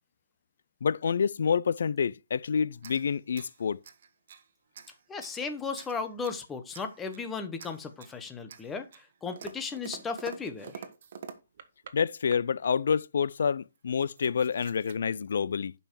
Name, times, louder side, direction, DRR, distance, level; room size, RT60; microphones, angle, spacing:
voice 1, 0.8-3.8 11.9-15.7, left 6 dB, 70° left, 0.4 m, -28 dB
sound 1, 2.8-4.5 4.7-5.4 5.8-6.4 6.7-7.3 7.6-8.2 8.5-12.0 12.3-12.7 13.4-13.5 13.8-15.0, right 7 dB, 55° right, 1.3 m, -47 dB
voice 2, 5.1-10.8, left 5 dB, 10° left, 1.1 m, -36 dB
11.5 x 5.7 x 4.7 m
hypercardioid pair, 160°, 0 cm